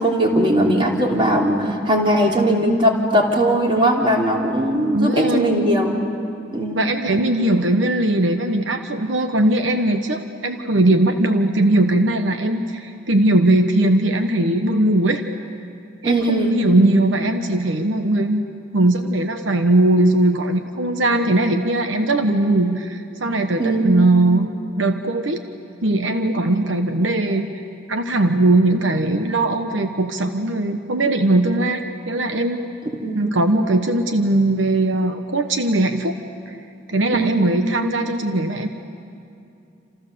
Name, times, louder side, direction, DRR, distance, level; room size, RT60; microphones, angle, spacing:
voice 1, 0.0-6.0 6.5-6.8 16.0-16.6 23.6-23.9 33.0-33.2 37.1-37.4, right 1 dB, 30° right, -1 dB, 3.4 m, -19 dB
voice 2, 4.9-5.4 6.7-15.2 16.0-18.4 18.7-24.5 24.8-25.4 25.8-27.5 27.9-32.6 33.1-36.1 36.5-36.6 36.9-38.7, right 1 dB, 80° right, 6 dB, 1.2 m, -19 dB
29.0 x 28.0 x 6.9 m, 2.6 s
head